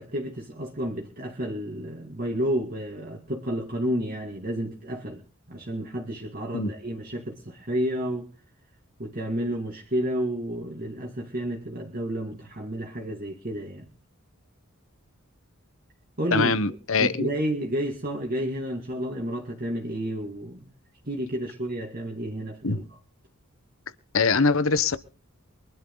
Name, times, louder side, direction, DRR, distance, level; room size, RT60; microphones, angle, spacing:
voice 1, 0.0-5.2 5.5-8.3 9.0-13.9 16.2-20.7 21.0-23.0, equal, 45° right, 2.6 m, -31 dB
voice 2, 16.3-17.3 22.6-22.8 24.1-25.0, left 4 dB, 70° left, 1.3 m, -23 dB
23.5 x 12.0 x 4.0 m
head